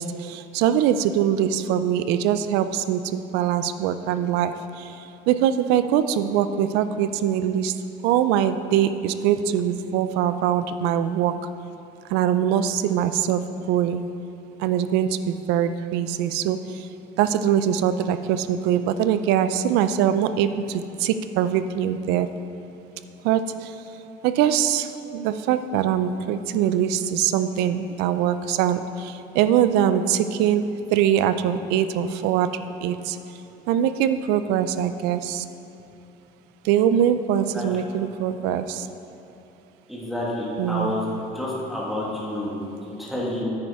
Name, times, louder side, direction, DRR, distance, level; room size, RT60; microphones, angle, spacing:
voice 1, 0.0-4.8 5.3-7.7 8.0-11.3 12.1-14.0 14.6-16.6 17.2-22.3 23.2-23.7 24.2-32.5 32.8-33.2 33.7-35.4 36.6-38.9 40.6-40.9, right 9 dB, 80° right, 11 dB, 0.4 m, -22 dB
voice 2, 39.9-41.0 41.3-43.4, left 1 dB, ahead, -6 dB, 1.5 m, -29 dB
9.6 x 9.3 x 3.5 m, 2.8 s
cardioid pair, 175°, 17 cm